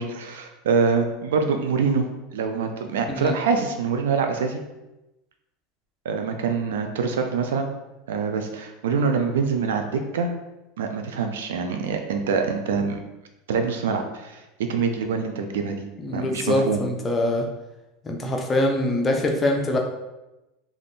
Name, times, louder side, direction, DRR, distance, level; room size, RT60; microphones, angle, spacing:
voice 1, 0.0-2.1 2.3-4.6 6.0-7.7 8.1-10.3 10.8-13.0 13.5-15.9 16.1-16.8, right 5 dB, 90° right, 5 dB, 0.4 m, -25 dB
voice 2, 16.0-17.5 18.0-19.8, left 1 dB, 25° left, 2 dB, 0.5 m, -23 dB
2.4 x 2.4 x 3.5 m, 0.98 s
supercardioid pair, 115°, 0 cm